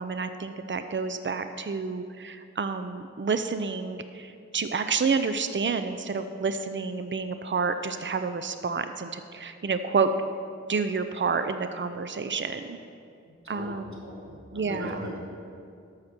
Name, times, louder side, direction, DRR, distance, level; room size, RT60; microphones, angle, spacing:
voice 1, 0.0-10.1 10.7-12.8 13.5-14.0 14.5-15.0, right 5 dB, 40° right, 9 dB, 0.6 m, -29 dB
voice 2, 13.4-15.2, equal, 70° right, -5 dB, 2.9 m, -39 dB
13.0 x 6.6 x 6.0 m, 2.4 s
wide cardioid pair, 45°, 29 cm